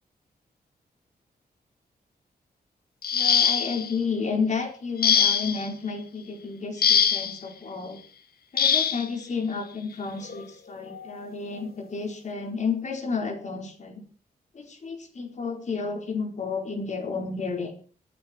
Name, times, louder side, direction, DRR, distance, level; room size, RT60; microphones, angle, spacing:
sound 1, 3.0-3.9 5.0-5.7 6.8-7.4 8.6-9.0 10.2-10.4 10.9-11.1, left 7 dB, 65° left, 1.4 m, -22 dB
voice 1, 3.1-8.0 8.5-14.0 14.5-17.7, left 5 dB, 45° left, 3 dB, 4.5 m, -31 dB
25.5 x 9.2 x 4.6 m, 0.39 s
wide cardioid pair, 150°, 17 cm